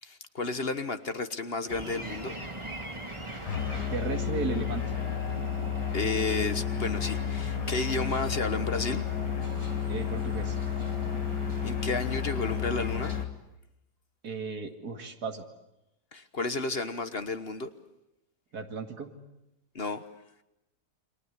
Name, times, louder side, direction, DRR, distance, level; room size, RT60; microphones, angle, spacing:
voice 1, 0.0-2.3 5.9-9.1 11.6-13.1 16.1-17.7 19.7-20.0, left 3 dB, 40° left, 10 dB, 1.4 m, -32 dB
sound 1, 1.7-13.2, right 1 dB, 15° right, 2.4 m, -40 dB
Musical instrument, 3.5-13.4, left 9 dB, 80° left, 1.8 m, -32 dB
voice 2, 3.7-4.9 9.9-10.6 14.2-15.4 18.5-19.1, right 4 dB, 70° right, 5 dB, 2.8 m, -35 dB
29.5 x 23.5 x 8.2 m, 0.89 s
omnidirectional pair, 1.7 m